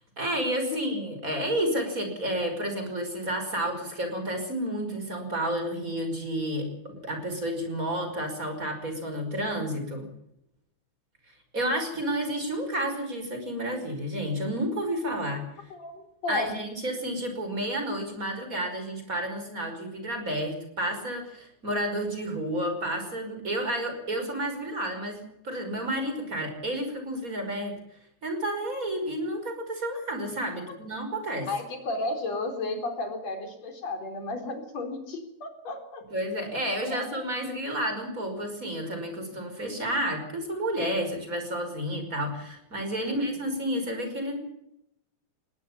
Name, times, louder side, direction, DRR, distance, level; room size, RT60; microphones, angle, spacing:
voice 1, 0.2-10.1 11.5-15.4 16.3-27.8 28.2-31.5 36.1-44.4, right 1 dB, 20° right, 6 dB, 5.6 m, -31 dB
voice 2, 15.7-16.6 31.5-36.0 36.9-37.2 43.0-43.4, left 2 dB, 45° left, 5 dB, 5.1 m, -33 dB
21.0 x 18.0 x 7.2 m, 0.78 s
omnidirectional pair, 4.3 m